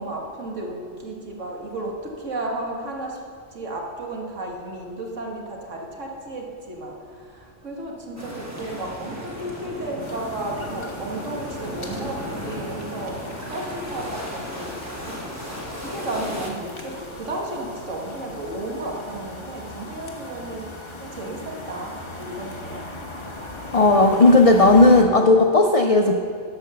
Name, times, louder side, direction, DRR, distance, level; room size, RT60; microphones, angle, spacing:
voice 1, 0.0-20.7 21.0-22.9, right 2 dB, 75° right, 0 dB, 1.8 m, -33 dB
sound 1, 8.2-16.5, equal, 15° right, 1.3 m, -35 dB
sound 2, 10.0-25.0, left 2 dB, 25° left, 1.0 m, -39 dB
voice 2, 23.7-26.1, left 2 dB, 55° left, 4 dB, 0.4 m, -14 dB
12.0 x 5.2 x 6.7 m, 2.2 s
omnidirectional pair, 1.3 m